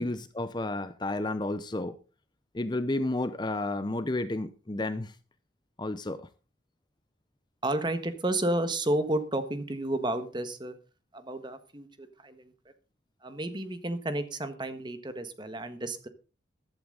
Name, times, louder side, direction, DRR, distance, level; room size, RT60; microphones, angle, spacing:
voice 1, 0.0-2.0 2.5-5.1 5.8-6.3, left 2 dB, 20° left, 0.7 m, -31 dB
voice 2, 7.6-10.8 11.1-12.5 13.2-16.1, right 1 dB, 25° right, 1.4 m, -31 dB
14.5 x 12.0 x 3.9 m
head